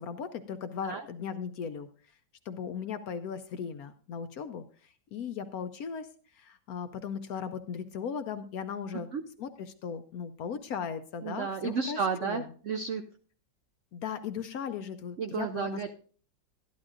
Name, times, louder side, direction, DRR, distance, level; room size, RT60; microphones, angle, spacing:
voice 1, 0.0-1.9 2.5-9.1 9.4-12.5 13.9-15.8, left 7 dB, 70° left, 10 dB, 0.9 m, -37 dB
voice 2, 11.2-13.0 15.2-15.9, right 6 dB, 70° right, 6 dB, 0.7 m, -32 dB
12.5 x 11.5 x 2.5 m, 0.43 s
omnidirectional pair, 2.0 m